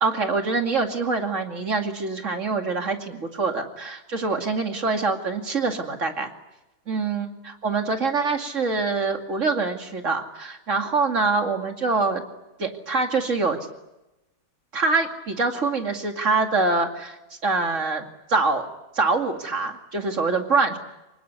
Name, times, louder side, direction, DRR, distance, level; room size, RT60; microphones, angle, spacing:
voice 1, 0.0-6.3 6.9-12.2 12.6-13.6 14.7-17.2 17.4-18.6 18.9-20.8, right 3 dB, 50° right, 4 dB, 2.8 m, -24 dB
25.5 x 20.5 x 9.6 m, 0.97 s
omnidirectional pair, 1.6 m